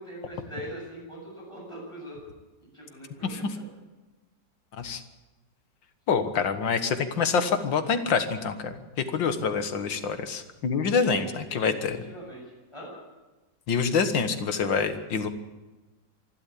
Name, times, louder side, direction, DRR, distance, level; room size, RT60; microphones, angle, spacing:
voice 1, 0.0-2.2 2.7-3.7 10.9-12.4 12.7-12.9, right 1 dB, 15° left, -2 dB, 8.2 m, -41 dB
voice 2, 6.1-12.0 13.7-15.3, left 5 dB, 75° left, 9 dB, 2.2 m, -26 dB
26.0 x 12.0 x 8.5 m, 1.2 s
omnidirectional pair, 2.0 m